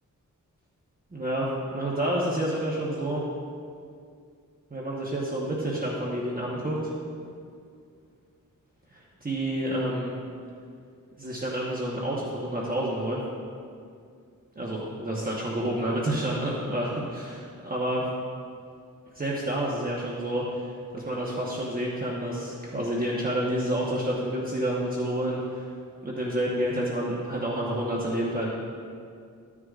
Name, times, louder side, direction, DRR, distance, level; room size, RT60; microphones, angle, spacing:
voice 1, 1.1-3.2 4.7-6.9 8.9-10.1 11.2-13.2 14.6-18.0 19.1-25.6 26.0-28.5, right 1 dB, 30° right, -5 dB, 1.1 m, -29 dB
14.0 x 9.6 x 2.5 m, 2.3 s
wide cardioid pair, 130°, 32 cm